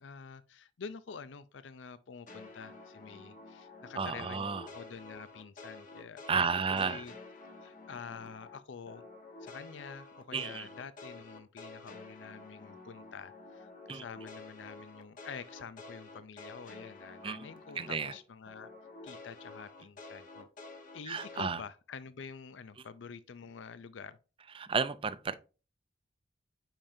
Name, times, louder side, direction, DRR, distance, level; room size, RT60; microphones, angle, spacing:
voice 1, 0.0-7.1 7.6-9.0 9.4-18.7 19.0-20.5 20.9-24.2, left 6 dB, 85° left, 0.5 m, -47 dB
sound 1, 2.3-8.6 8.9-18.2 18.5-21.5, left 3 dB, 45° left, 1.2 m, -50 dB
voice 2, 4.0-4.7 6.3-7.0 10.3-10.7 13.9-14.0 17.2-17.5 17.8-18.1 21.1-21.6 24.5-25.3, right 5 dB, 30° right, 0.5 m, -32 dB
8.8 x 5.1 x 2.7 m
head